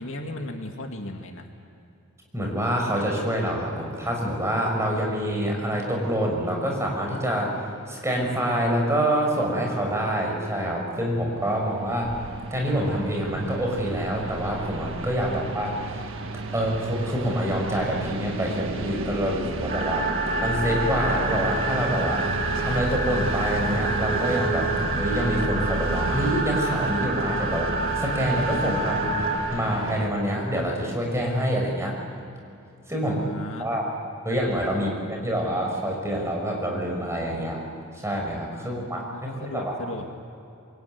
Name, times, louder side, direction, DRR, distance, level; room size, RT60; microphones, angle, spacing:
voice 1, 0.0-1.5 15.2-15.4 20.1-20.2 33.0-33.7 34.8-34.9 38.6-40.1, left 1 dB, 60° left, 3 dB, 2.4 m, -36 dB
voice 2, 2.3-7.5 7.9-12.2 12.5-15.8 16.5-20.1 20.4-22.3 22.6-32.0 32.9-33.2 33.6-33.8 34.2-37.6 38.0-39.7, equal, 15° right, 0 dB, 6.0 m, -26 dB
Train, 11.1-30.1, right 2 dB, 60° right, 1.8 m, -34 dB
sound 1, 12.0-29.3, right 2 dB, 80° right, 1.1 m, -37 dB
sound 2, 19.7-29.4, right 2 dB, 40° right, 6.1 m, -28 dB
27.0 x 23.0 x 9.5 m, 2.6 s
head